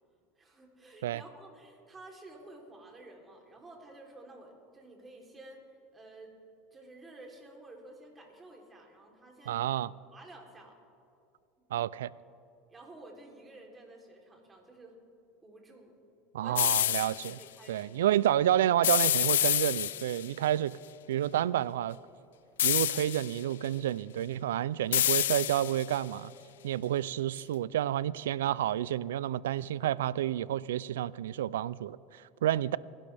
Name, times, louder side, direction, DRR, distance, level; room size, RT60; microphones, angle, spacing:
voice 1, 0.4-5.6 5.9-6.4 6.7-9.6 10.1-10.8 12.7-15.0 15.4-16.0 16.4-16.6 17.1-17.9, right 2 dB, 20° right, 0 dB, 3.3 m, -52 dB
voice 2, 9.5-9.9 11.7-12.1 16.3-17.4 17.7-20.8 21.1-22.0 22.6-26.3 26.6-32.8, right 12 dB, 90° right, 21 dB, 0.3 m, -30 dB
sound 1, 16.6-17.3 18.8-20.3 22.6-23.4 24.9-26.0, left 12 dB, 90° left, 0.4 m, -28 dB
27.5 x 11.5 x 3.4 m, 2.5 s
supercardioid pair, 100°, 0 cm